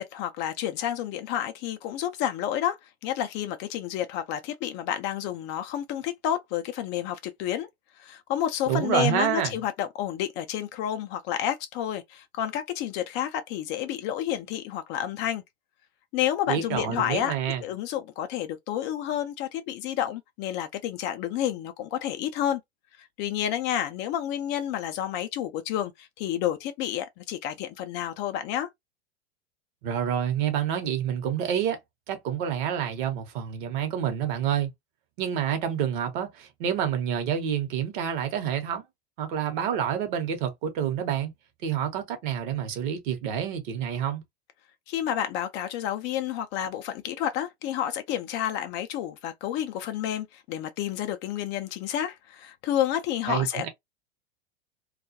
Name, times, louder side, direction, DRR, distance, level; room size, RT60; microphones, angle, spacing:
voice 1, 0.0-7.7 8.0-15.4 16.1-17.3 17.6-22.6 23.0-28.7 44.9-53.7, left 11 dB, 35° left, 0.4 m, -30 dB
voice 2, 8.7-9.5 16.5-17.6 29.8-31.8 32.1-34.7 35.2-38.8 39.2-41.3 41.6-44.2 53.3-53.7, right 9 dB, 50° right, 0.9 m, -28 dB
2.3 x 2.1 x 2.6 m
hypercardioid pair, 100°, 32 cm